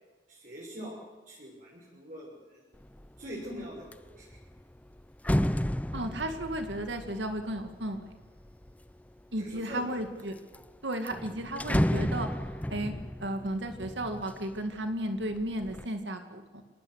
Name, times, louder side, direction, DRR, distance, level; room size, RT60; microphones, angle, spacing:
voice 1, 0.3-1.0 1.3-2.6 3.2-4.4 9.4-9.9, equal, 45° right, -4 dB, 6.9 m, -43 dB
sound 1, 2.8-3.2 3.6-8.9 9.5-10.2 10.5-10.6 10.9-14.8 15.2-15.9, equal, 10° left, 0.7 m, -32 dB
voice 2, 5.9-8.0 9.3-10.4 10.8-12.4 12.7-12.9 13.2-16.6, right 1 dB, 70° right, 6 dB, 2.2 m, -34 dB
27.0 x 19.5 x 8.1 m, 1.3 s
head